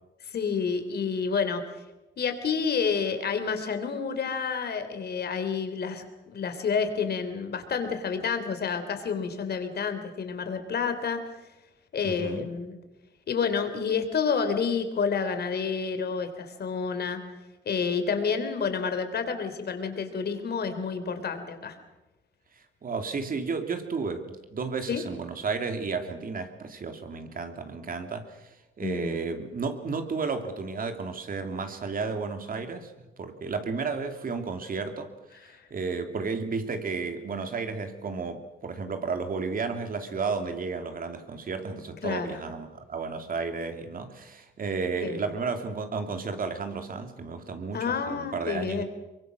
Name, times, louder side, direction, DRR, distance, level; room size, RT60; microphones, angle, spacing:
voice 1, 0.3-1.6 2.2-11.2 11.9-12.8 13.3-17.2 17.7-21.8 24.9-25.0 28.8-29.2 42.0-42.4 45.0-45.3 47.7-48.8, left 6 dB, 55° left, 8 dB, 3.5 m, -29 dB
voice 2, 12.0-12.4 22.8-28.5 28.8-35.1 35.7-48.8, right 4 dB, 45° right, 6 dB, 2.8 m, -32 dB
23.5 x 23.0 x 6.3 m, 1.0 s
cardioid pair, 90°, 20 cm